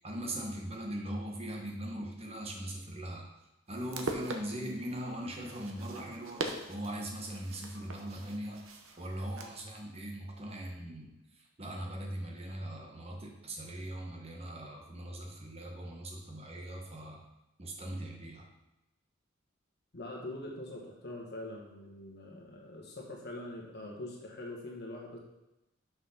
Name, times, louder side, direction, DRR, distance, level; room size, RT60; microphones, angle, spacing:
voice 1, 0.0-3.3 3.7-8.6 9.0-17.2 17.6-18.5, right 1 dB, 30° right, 0 dB, 1.2 m, -40 dB
sound 1, 3.7-9.7, right 2 dB, 70° right, 0.9 m, -42 dB
voice 2, 19.9-25.2, left 1 dB, 50° left, -2 dB, 1.3 m, -43 dB
6.2 x 5.6 x 5.7 m, 0.94 s
head